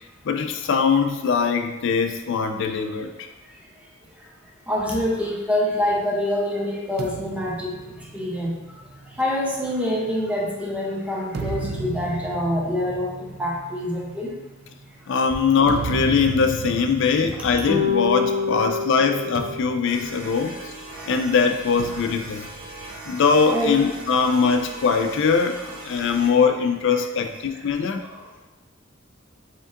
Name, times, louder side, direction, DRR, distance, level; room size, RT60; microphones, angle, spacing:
voice 1, 0.2-3.1 15.1-20.6 21.1-22.4 23.1-25.6 25.8-28.0, left 5 dB, 65° left, 6 dB, 0.4 m, -21 dB
voice 2, 4.7-7.7 8.1-8.5 9.2-13.1 13.4-14.3 23.5-23.8, left 1 dB, 5° right, -3 dB, 0.8 m, -25 dB
sound 1, 7.0-10.6 11.1-18.5 18.8-19.0 19.4-21.0 21.8-23.5, right 4 dB, 50° right, 0.3 m, -35 dB
sound 2, 17.7-20.2, left 5 dB, 85° left, 0.8 m, -26 dB
sound 3, 19.9-26.4, right 1 dB, 85° right, 1.1 m, -40 dB
5.1 x 3.5 x 2.5 m, 1.1 s
head